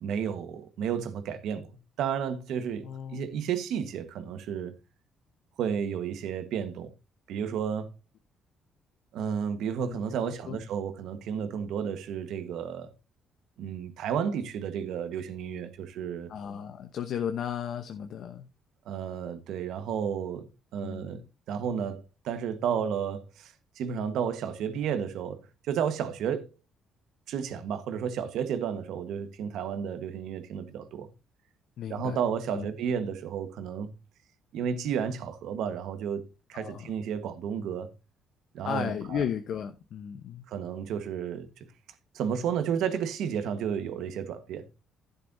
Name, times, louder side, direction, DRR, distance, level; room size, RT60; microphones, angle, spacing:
voice 1, 0.0-4.8 5.6-6.9 7.3-7.9 9.1-12.9 13.6-16.3 18.9-21.2 21.5-26.5 27.3-31.1 31.9-33.9 34.5-37.9 38.5-39.2 40.5-41.5 42.1-44.7, right 7 dB, 75° right, 1.4 m, -32 dB
voice 2, 2.8-3.3 9.8-10.0 10.2-10.6 16.3-18.5 20.8-21.3 31.8-32.2 32.5-32.7 36.5-36.9 38.6-40.4, left 8 dB, 60° left, 0.9 m, -35 dB
11.0 x 11.0 x 2.7 m
cardioid pair, 130°, 0 cm